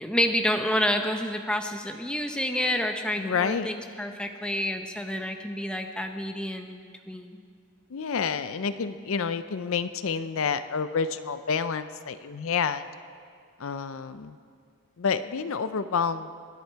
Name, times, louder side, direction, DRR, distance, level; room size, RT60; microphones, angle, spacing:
voice 1, 0.0-7.4, left 1 dB, 5° left, 5 dB, 0.7 m, -29 dB
voice 2, 3.2-3.7 7.9-12.8 13.6-14.4 15.0-16.3, left 6 dB, 70° left, 12 dB, 0.5 m, -29 dB
21.0 x 11.0 x 4.6 m, 2.3 s
head